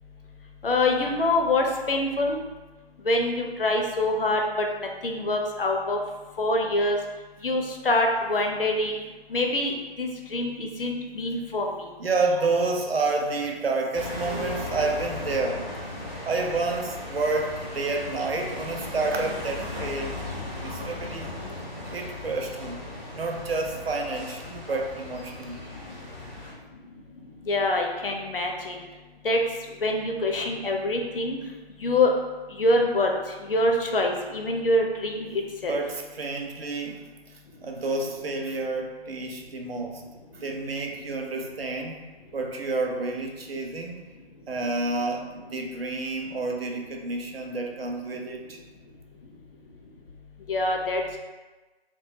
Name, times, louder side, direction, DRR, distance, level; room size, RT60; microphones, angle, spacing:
voice 1, 0.6-2.4 3.1-4.4 5.0-6.0 6.4-7.0 7.4-9.0 9.3-11.7 27.5-28.8 29.2-29.4 29.8-31.4 31.8-32.1 32.6-33.1 33.5-35.3 35.6-35.8 50.5-51.0, left 2 dB, 60° left, 2 dB, 0.4 m, -25 dB
voice 2, 12.0-15.7 16.2-20.2 20.6-21.3 21.8-22.8 23.1-25.6 35.7-37.1 37.6-40.0 40.3-42.0 42.3-44.0 44.5-48.6, right 3 dB, 65° right, 2 dB, 0.5 m, -29 dB
sound 1, 13.9-26.5, left 2 dB, ahead, 0.4 m, -37 dB
2.2 x 2.2 x 2.7 m, 1.2 s
figure-of-eight pair, 150°, 32 cm